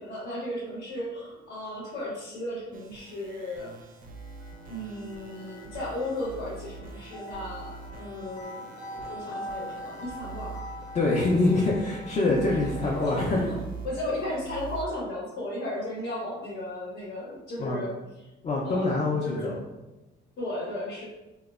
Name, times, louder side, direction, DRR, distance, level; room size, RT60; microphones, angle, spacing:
voice 1, 0.0-3.7 4.7-8.6 8.9-10.6 12.2-13.4 13.8-18.0 18.6-19.6 20.4-21.1, left 1 dB, 65° left, -6 dB, 0.8 m, -35 dB
sound 1, 2.7-14.8, right 4 dB, 45° right, 0.4 m, -44 dB
sound 2, 4.1-13.5, equal, 85° left, 0.5 m, -43 dB
voice 2, 10.9-13.4 17.6-17.8 18.4-19.5, left 2 dB, 35° left, -3 dB, 0.4 m, -25 dB
2.9 x 2.0 x 2.3 m, 1.0 s
cardioid pair, 90°, 20 cm